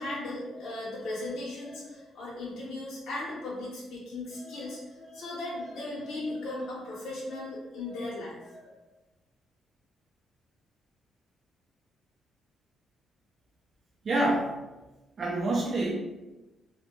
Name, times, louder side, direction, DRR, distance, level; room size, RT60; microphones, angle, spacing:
voice 1, 0.0-8.8, left 2 dB, 85° left, -6 dB, 0.7 m, -37 dB
voice 2, 14.0-14.5 15.2-15.9, right 1 dB, 35° right, -3 dB, 0.3 m, -27 dB
2.2 x 2.1 x 2.9 m, 1.1 s
cardioid pair, 150°, 0 cm